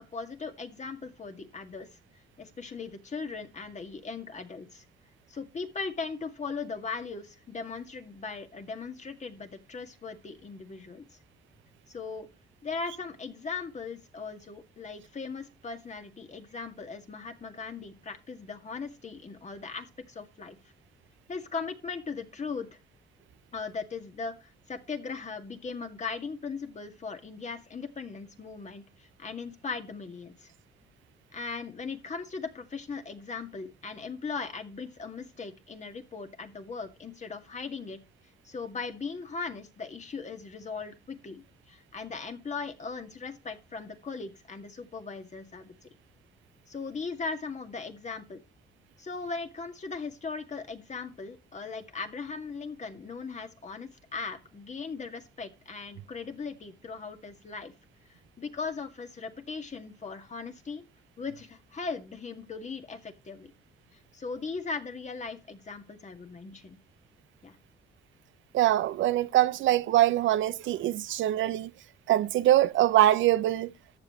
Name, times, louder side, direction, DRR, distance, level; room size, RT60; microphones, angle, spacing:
voice 1, 0.0-1.9 2.4-4.8 5.3-11.1 11.9-12.3 12.6-20.6 21.3-22.8 23.5-30.5 31.3-38.0 38.4-45.8 46.7-48.4 49.0-57.7 58.4-60.9 61.2-63.5 64.1-66.8 67.4-67.6, left 4 dB, 35° left, 2.1 m, -38 dB
voice 2, 68.5-71.7 72.1-73.7, right 14 dB, 75° right, 0.6 m, -23 dB
14.0 x 7.9 x 3.2 m
cardioid pair, 90°, 20 cm